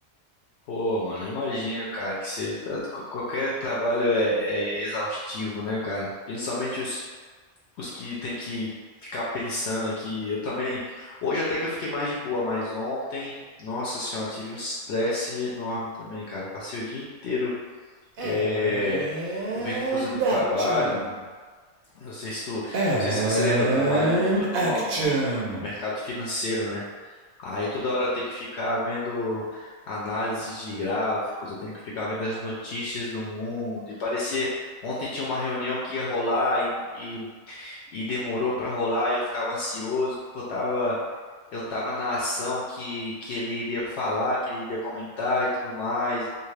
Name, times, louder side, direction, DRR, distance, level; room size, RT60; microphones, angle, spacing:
voice 1, 0.7-7.0 7.8-8.7 9.1-17.5 18.2-21.0 21.9-26.8 27.4-40.9 41.5-46.3, left 2 dB, 70° left, -6 dB, 0.8 m, -29 dB
Male speech man speaking, 18.2-21.2 22.7-25.7, right 2 dB, 60° right, 0.6 m, -26 dB
2.6 x 2.3 x 3.2 m, 1.5 s
omnidirectional pair, 1.3 m